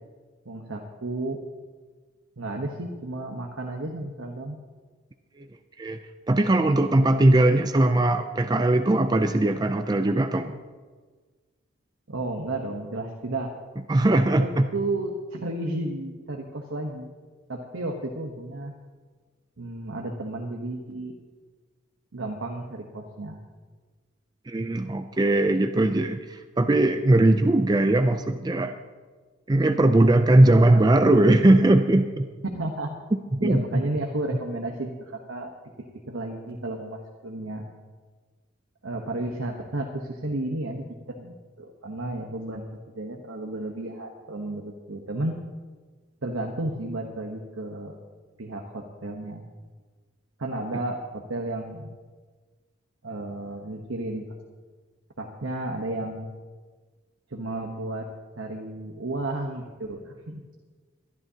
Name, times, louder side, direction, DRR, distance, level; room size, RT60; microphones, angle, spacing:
voice 1, 0.5-1.4 2.4-4.6 12.1-13.5 14.1-17.1 17.5-18.7 19.6-21.2 22.1-23.4 32.5-32.9 33.4-35.5 36.1-37.6 38.8-45.4 46.2-48.0 48.4-49.4 50.4-51.9 53.0-54.2 55.2-56.3 57.3-58.1 58.4-60.4, right 2 dB, 85° right, 2 dB, 1.1 m, -32 dB
voice 2, 6.3-10.6 13.9-14.7 24.5-28.7 29.5-32.3 33.3-33.8, right 1 dB, 20° right, 7 dB, 0.4 m, -20 dB
22.5 x 11.0 x 2.8 m, 1.4 s
head